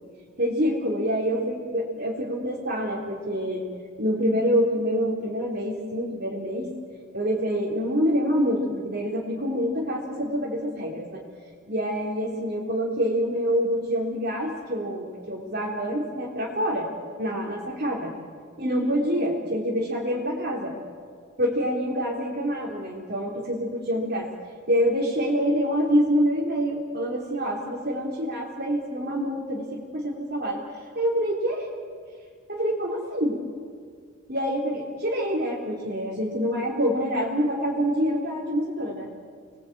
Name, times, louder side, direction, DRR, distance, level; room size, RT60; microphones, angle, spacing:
voice 1, 0.4-3.6 4.0-6.7 7.1-11.2 11.7-16.9 17.2-18.1 18.6-20.7 21.4-24.3 24.7-30.6 30.9-31.7 32.5-33.4 34.3-39.1, equal, 50° right, -4 dB, 3.4 m, -26 dB
30.0 x 22.0 x 8.6 m, 2.1 s
head